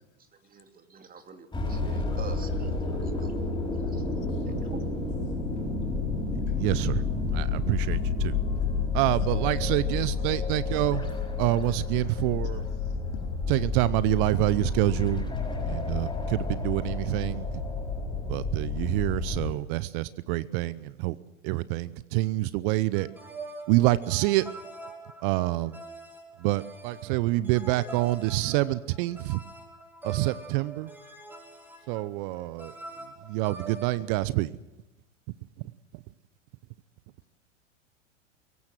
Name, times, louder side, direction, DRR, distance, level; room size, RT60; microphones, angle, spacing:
voice 1, 0.4-3.4 4.7-4.8, right 6 dB, 25° right, 7 dB, 2.5 m, -44 dB
sound 1, 1.5-19.5, left 4 dB, 10° left, 6.1 m, -30 dB
voice 2, 6.6-7.0 7.3-8.3 8.9-11.0 11.4-12.5 13.5-15.2 15.7-17.4 18.3-20.7 21.0-21.1 21.4-23.1 23.7-24.4 25.2-25.7 26.4-29.4 30.0-30.9 31.9-32.7 33.3-34.5, right 18 dB, 45° right, 18 dB, 0.8 m, -26 dB
voice 3, 10.0-10.6 10.9-11.1 11.6-11.7 12.4-12.8, left 9 dB, 50° left, 3 dB, 4.5 m, -50 dB
sound 2, 22.9-34.0, right 2 dB, 5° right, 4.0 m, -44 dB
23.0 x 17.5 x 7.6 m, 0.99 s
hypercardioid pair, 95°, 37 cm